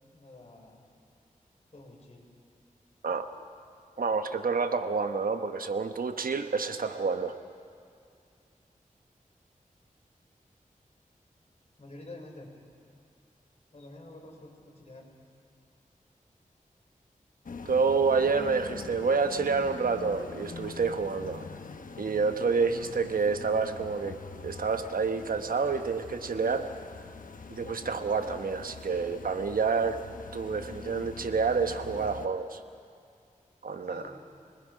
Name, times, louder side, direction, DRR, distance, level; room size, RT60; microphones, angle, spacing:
voice 1, 0.1-0.8 1.7-2.3 11.8-12.5 13.7-15.1 33.7-34.2, left 2 dB, 50° left, 0 dB, 4.5 m, -48 dB
voice 2, 4.0-7.4 17.6-21.5 22.0-24.2 24.4-26.7 27.5-30.0 30.3-32.6 33.6-34.0, right 5 dB, 85° right, 8 dB, 1.0 m, -28 dB
sound 1, 17.4-32.3, left 4 dB, 70° left, 1.0 m, -44 dB
26.5 x 20.0 x 5.2 m, 2.3 s
wide cardioid pair, 55°, 14 cm